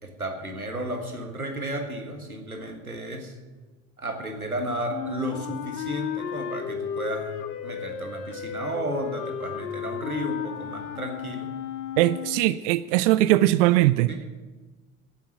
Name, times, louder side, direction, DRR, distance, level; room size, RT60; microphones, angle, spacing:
voice 1, 0.0-3.3 4.0-7.3 7.6-11.5 14.1-14.2, right 1 dB, 90° right, 4 dB, 1.6 m, -33 dB
Wind instrument woodwind instrument, 4.9-12.6, left 8 dB, 60° left, 1.4 m, -34 dB
voice 2, 12.0-14.1, right 16 dB, 60° right, 17 dB, 0.5 m, -20 dB
9.6 x 9.4 x 9.9 m, 1.3 s
figure-of-eight pair, 60°, 43 cm